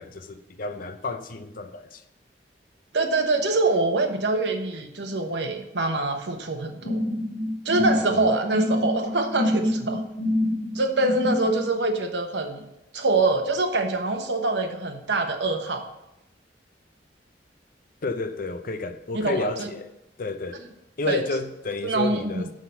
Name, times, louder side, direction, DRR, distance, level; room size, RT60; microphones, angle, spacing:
voice 1, 0.0-2.0 7.8-8.3 18.0-19.9 20.2-20.6 21.0-22.5, left 3 dB, 50° left, 0.6 m, -31 dB
voice 2, 2.9-7.0 7.6-10.0 10.7-12.6 12.9-15.8 19.1-19.7 21.0-21.2 21.8-22.4, right 2 dB, 70° right, 1.1 m, -24 dB
sound 1, 6.8-11.6, left 1 dB, 80° left, 1.9 m, -26 dB
6.5 x 5.9 x 6.8 m
head